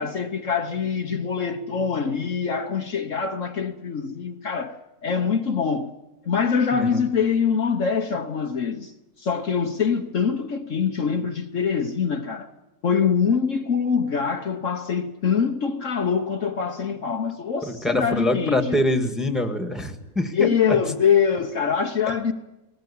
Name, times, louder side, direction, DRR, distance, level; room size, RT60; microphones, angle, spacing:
voice 1, 0.0-5.9 6.2-8.9 9.2-12.5 12.8-18.8 20.3-22.3, left 6 dB, 55° left, 1.3 m, -24 dB
voice 2, 17.7-20.8, left 1 dB, ahead, 1.6 m, -25 dB
20.0 x 18.5 x 8.5 m
omnidirectional pair, 1.7 m